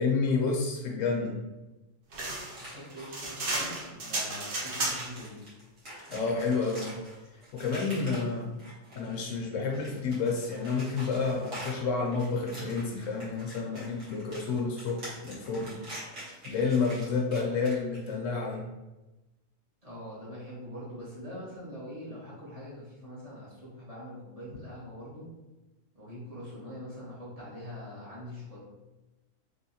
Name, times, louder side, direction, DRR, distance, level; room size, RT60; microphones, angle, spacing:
voice 1, 0.0-1.4 6.1-6.9 7.5-8.5 9.0-15.8 16.4-18.6, left 4 dB, 75° left, -1 dB, 1.0 m, -30 dB
sound 1, 2.1-5.3, right 2 dB, 50° right, 0.8 m, -33 dB
voice 2, 2.5-5.4 19.8-25.3 25.9-28.6, equal, 30° right, -9 dB, 1.2 m, -43 dB
sound 2, 2.5-3.3 4.2-4.3 4.7-9.2 9.6-18.1, right 1 dB, 75° right, 1.7 m, -45 dB
3.5 x 3.0 x 2.8 m, 1.1 s
omnidirectional pair, 1.3 m